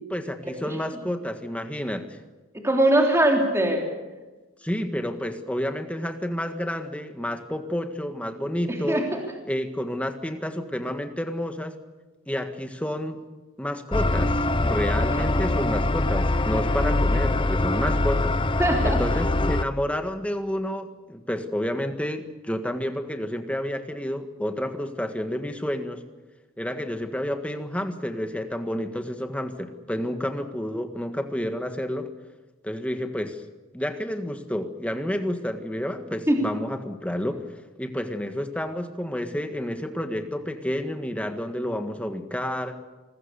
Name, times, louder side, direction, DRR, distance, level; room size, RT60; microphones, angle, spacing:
voice 1, 0.1-2.2 4.6-9.0 9.4-11.8 12.3-13.2 13.6-18.4 18.8-26.0 26.6-32.1 32.6-33.4 33.7-37.4 37.8-42.8, equal, 5° left, 7 dB, 1.6 m, -30 dB
voice 2, 2.6-3.9 8.7-9.1 18.6-19.0 36.3-36.4, right 1 dB, 10° right, 1 dB, 3.3 m, -21 dB
sound 1, 13.9-19.6, left 2 dB, 25° left, 0.7 m, -23 dB
27.0 x 20.5 x 7.0 m, 1.2 s
head